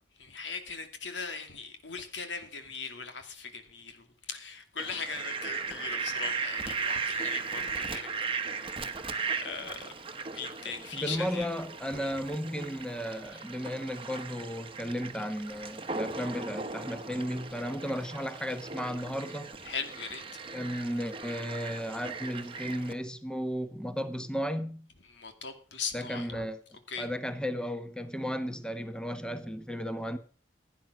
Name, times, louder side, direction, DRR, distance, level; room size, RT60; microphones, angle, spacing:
voice 1, 0.2-8.1 8.6-8.9 9.4-9.9 10.3-11.5 11.9-12.1 19.6-20.4 25.1-26.5 26.9-27.1, left 5 dB, 85° left, 2.5 m, -39 dB
Fowl, 4.8-22.9, right 4 dB, 30° right, 1.1 m, -37 dB
voice 2, 10.9-19.5 20.5-24.9 25.9-26.6 27.0-30.2, equal, 5° left, 1.2 m, -34 dB
16.0 x 9.5 x 6.2 m
head